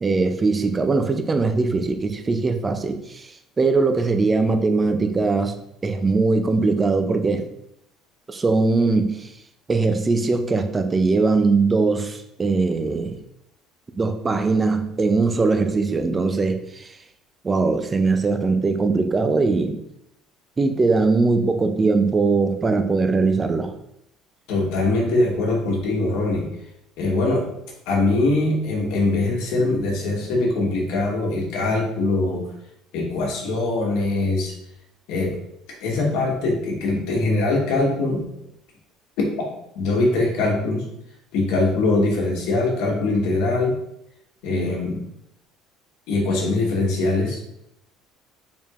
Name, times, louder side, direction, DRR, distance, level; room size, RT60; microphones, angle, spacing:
voice 1, 0.0-5.6 5.8-7.5 8.3-9.3 9.7-13.2 14.0-17.0 17.4-19.8 20.6-23.7, right 3 dB, 15° right, 7 dB, 0.4 m, -21 dB
voice 2, 24.5-26.5 27.0-27.4 27.9-32.5 32.9-34.5 35.1-35.3 35.8-38.3 39.4-39.5 39.7-40.8 41.3-43.7 44.4-45.0 46.1-47.4, left 2 dB, 75° left, -1 dB, 1.2 m, -22 dB
4.4 x 3.5 x 2.4 m, 0.77 s
cardioid pair, 155°, 0 cm